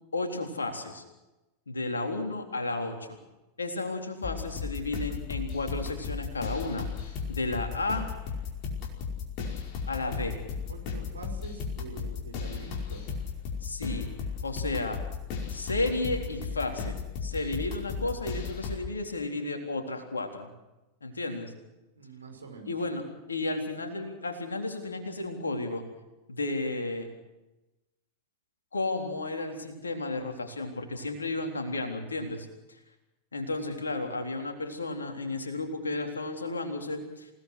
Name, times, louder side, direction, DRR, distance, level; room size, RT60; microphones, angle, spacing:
voice 1, 0.1-1.0 1.7-3.1 3.6-6.9 7.3-8.1 9.9-10.4 13.6-14.1 14.4-15.0 15.5-20.5 21.0-21.5 22.7-23.0 23.3-25.8 26.3-27.1 28.7-32.5 33.3-37.3, left 2 dB, 75° left, 4 dB, 3.7 m, -33 dB
sound 1, 4.2-18.8, left 6 dB, 40° left, 5.1 m, -35 dB
voice 2, 10.7-13.1 22.0-22.7, right 4 dB, 75° right, 3 dB, 5.6 m, -45 dB
28.5 x 18.0 x 6.4 m, 1.0 s
figure-of-eight pair, 90°, 0 cm